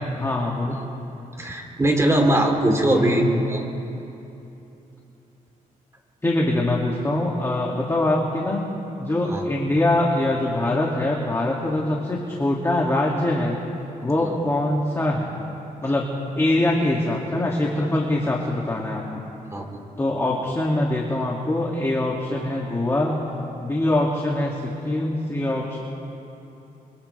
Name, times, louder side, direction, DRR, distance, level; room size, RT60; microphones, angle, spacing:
voice 1, 0.1-0.8 2.9-3.4 6.2-8.6 9.0-13.6 14.0-15.3 15.8-19.0 20.0-23.1 23.6-25.8, left 1 dB, 20° left, -2 dB, 2.5 m, -23 dB
voice 2, 1.4-3.2 3.5-3.6 9.3-9.4 14.2-14.4 19.5-19.8, right 1 dB, 20° right, 1 dB, 3.5 m, -21 dB
30.0 x 25.0 x 3.5 m, 2.9 s
cardioid pair, 95°, 15 cm